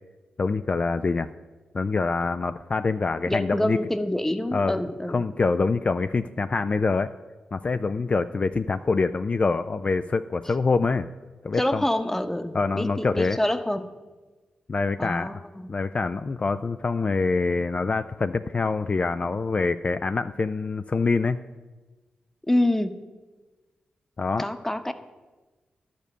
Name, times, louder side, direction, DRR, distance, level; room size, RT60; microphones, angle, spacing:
voice 1, 0.4-1.3 1.7-3.8 4.5-4.8 5.1-7.1 7.5-11.1 11.4-11.8 12.5-13.4 14.7-15.3 15.7-21.4 24.2-24.5, left 4 dB, 45° left, 10 dB, 0.4 m, -25 dB
voice 2, 3.3-5.2 11.6-13.9 15.0-15.7 22.5-23.0 24.4-24.9, left 1 dB, 10° left, 9 dB, 0.9 m, -26 dB
11.0 x 5.2 x 6.7 m, 1.2 s
supercardioid pair, 45°, 3 cm